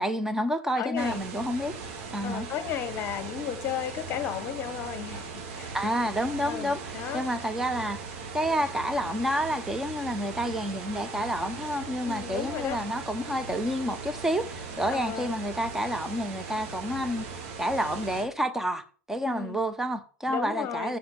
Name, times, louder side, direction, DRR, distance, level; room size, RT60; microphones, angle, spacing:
voice 1, 0.0-1.8 2.1-2.5 5.7-8.0 8.3-17.3 17.6-21.0, equal, 5° right, 1.1 m, -29 dB
voice 2, 0.8-1.2 2.2-5.7 6.4-7.2 12.0-12.8 14.9-15.3 19.2-19.6 20.3-20.9, left 9 dB, 35° left, 1.5 m, -34 dB
sound 1, 1.0-18.2, right 5 dB, 55° right, 2.1 m, -39 dB
7.9 x 6.4 x 6.5 m
figure-of-eight pair, 90°, 8 cm